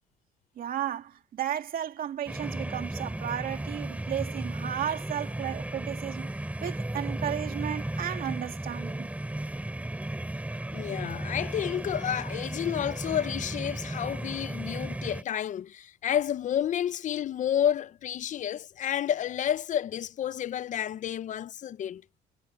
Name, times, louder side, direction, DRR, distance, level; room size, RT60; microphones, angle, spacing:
voice 1, 0.6-9.1, right 10 dB, 60° right, 2.6 m, -34 dB
sound 1, 2.3-15.2, right 1 dB, 10° right, 5.8 m, -35 dB
voice 2, 10.7-22.0, left 10 dB, 45° left, 0.6 m, -30 dB
cardioid pair, 110°, 17 cm